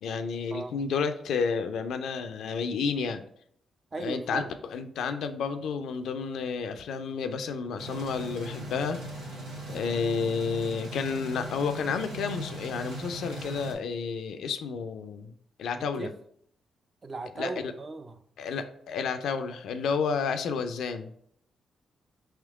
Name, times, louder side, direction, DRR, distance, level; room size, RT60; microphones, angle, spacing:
voice 1, 0.0-3.2 4.0-9.0 9.7-15.3 15.6-16.1 17.4-17.7 18.4-21.1, left 5 dB, 75° left, 8 dB, 0.3 m, -31 dB
voice 2, 3.9-4.5 16.0-16.1 17.0-18.1, right 3 dB, 45° right, 8 dB, 0.4 m, -36 dB
sound 1, 7.8-13.7, right 2 dB, 85° right, 0.9 m, -39 dB
3.6 x 2.9 x 3.5 m, 0.66 s
hypercardioid pair, 45°, 0 cm